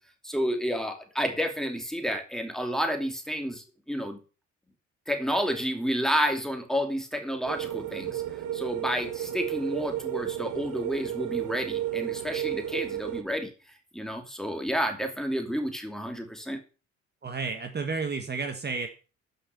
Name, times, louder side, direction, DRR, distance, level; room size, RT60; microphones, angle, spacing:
voice 1, 0.2-4.2 5.1-13.5 13.9-16.6, equal, ahead, 5 dB, 2.7 m, -30 dB
sound 1, 7.5-13.2, right 12 dB, 80° right, 1.1 m, -33 dB
voice 2, 17.2-18.9, right 4 dB, 35° right, 6 dB, 1.5 m, -31 dB
10.0 x 5.8 x 6.9 m, 0.34 s
cardioid pair, 90°, 30 cm